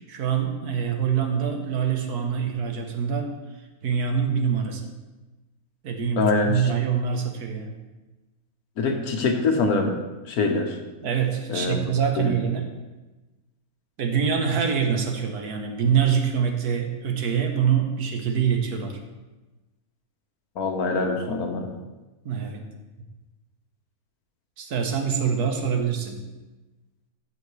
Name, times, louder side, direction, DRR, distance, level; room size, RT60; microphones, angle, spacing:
voice 1, 0.1-3.4 3.8-4.8 5.8-7.7 11.0-12.7 14.0-19.0 22.2-22.6 24.6-26.2, right 7 dB, 85° right, 4 dB, 1.6 m, -25 dB
voice 2, 6.2-6.7 8.8-9.9 10.3-10.8 11.5-11.8 12.2-12.3 20.6-21.7, left 3 dB, 75° left, 4 dB, 1.5 m, -24 dB
14.5 x 5.7 x 3.2 m, 1.1 s
omnidirectional pair, 1.6 m